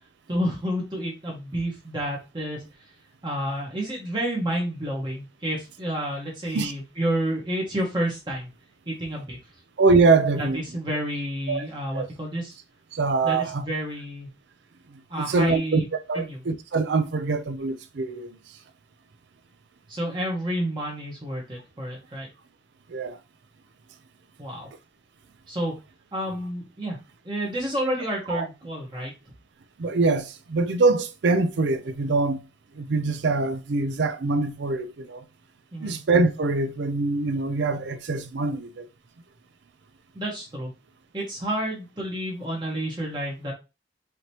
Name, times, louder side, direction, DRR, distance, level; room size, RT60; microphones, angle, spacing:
voice 1, 0.3-2.6 3.2-8.5 8.9-9.4 10.4-12.5 13.2-14.3 15.1-15.9 16.1-16.4 19.9-22.3 24.4-24.7 25.5-25.7 26.1-27.0 27.2-29.1 35.7-36.0 40.1-40.7 41.1-43.5, right 1 dB, 25° right, 1.2 m, -30 dB
voice 2, 9.8-10.6 11.5-11.7 11.9-12.1 12.9-13.7 14.9-15.8 16.1-18.4 22.9-23.2 28.3-28.5 29.8-32.4 32.7-35.2 35.8-38.9, right 3 dB, 65° right, 0.5 m, -24 dB
4.9 x 2.9 x 2.8 m
head